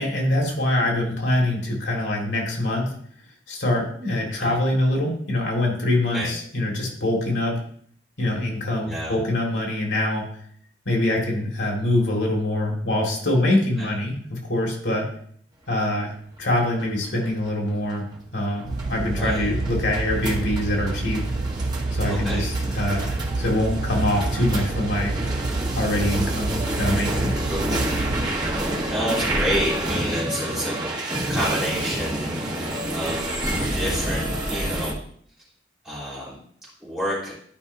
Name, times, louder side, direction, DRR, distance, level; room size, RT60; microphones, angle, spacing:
voice 1, 0.0-2.9 3.5-7.6 8.2-10.2 10.9-15.1 15.7-16.1 16.4-18.0 18.3-21.2 21.9-25.2 25.7-27.4, left 1 dB, 85° left, -1 dB, 2.0 m, -24 dB
voice 2, 8.8-9.2 13.8-13.9 19.1-19.5 22.0-22.5 27.5-27.7 28.5-30.7 31.3-33.3 33.7-35.0 35.8-36.4 36.8-37.3, equal, 5° right, -9 dB, 3.3 m, -29 dB
sound 1, 16.3-34.9, right 1 dB, 20° right, 1.1 m, -29 dB
sound 2, 18.6-28.3, right 3 dB, 50° right, 0.4 m, -28 dB
11.5 x 5.2 x 2.7 m, 0.62 s
head